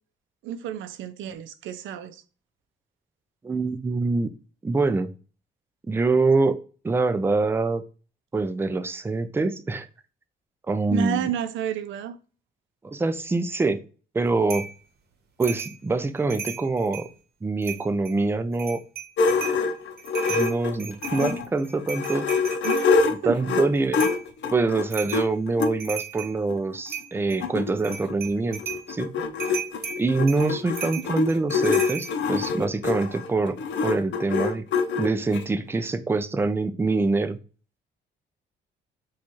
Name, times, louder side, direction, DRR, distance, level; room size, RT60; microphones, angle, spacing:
voice 1, 0.4-2.2 10.9-12.2 22.6-23.6 31.0-31.1, right 9 dB, 75° right, 0.5 m, -31 dB
voice 2, 3.4-4.3 4.6-5.1 5.9-6.6 6.8-7.8 8.3-9.9 10.7-11.3 12.8-13.8 14.1-14.7 15.4-17.1 17.4-18.8 20.3-22.3 23.2-24.1 24.5-28.6 28.9-29.1 30.0-33.6 33.8-34.7 35.0-37.4, right 3 dB, 10° right, 0.3 m, -25 dB
sound 1, 14.5-14.8 15.4-15.8 16.2-17.1 17.6-18.1 18.5-19.6 20.0-22.9 24.0-24.3 24.9-25.3 25.7-26.4 26.9-27.4 27.8-28.9 29.4-32.1, right 6 dB, 55° right, 0.9 m, -36 dB
sound 2, 19.2-21.5 21.9-25.7 26.5-26.6 26.9-27.0 27.2-35.4, left 4 dB, 65° left, 0.6 m, -25 dB
4.2 x 2.4 x 3.0 m
cardioid pair, 90°, 20 cm